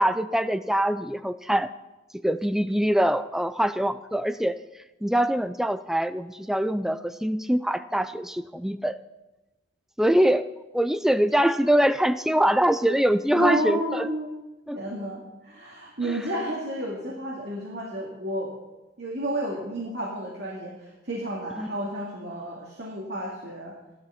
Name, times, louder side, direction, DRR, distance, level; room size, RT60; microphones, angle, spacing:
voice 1, 0.0-1.7 2.2-4.6 5.0-9.0 10.0-10.5 10.7-14.1 14.7-14.8 21.6-21.7, equal, ahead, 12 dB, 0.4 m, -23 dB
voice 2, 13.3-14.4 14.7-18.5 19.0-23.7, right 1 dB, 55° right, -3 dB, 2.3 m, -31 dB
15.0 x 11.5 x 5.8 m, 1.1 s
head